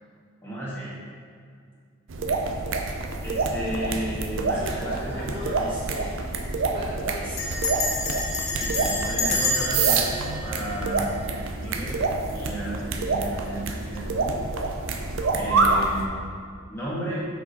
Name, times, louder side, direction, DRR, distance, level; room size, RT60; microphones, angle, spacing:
voice 1, 0.4-0.9 3.2-5.7 8.6-11.2 11.5-14.4 15.3-16.2 16.7-17.2, right 1 dB, 10° left, -8 dB, 1.5 m, -33 dB
sound 1, 2.1-16.1, right 3 dB, 65° right, 0.5 m, -27 dB
voice 2, 4.5-6.1 6.7-7.4, equal, 25° right, -8 dB, 1.1 m, -38 dB
Bell, 5.2-5.6 5.9-6.0 6.2-6.6 7.4-11.5, left 2 dB, 30° left, 0.9 m, -29 dB
5.9 x 4.9 x 4.0 m, 2.1 s
head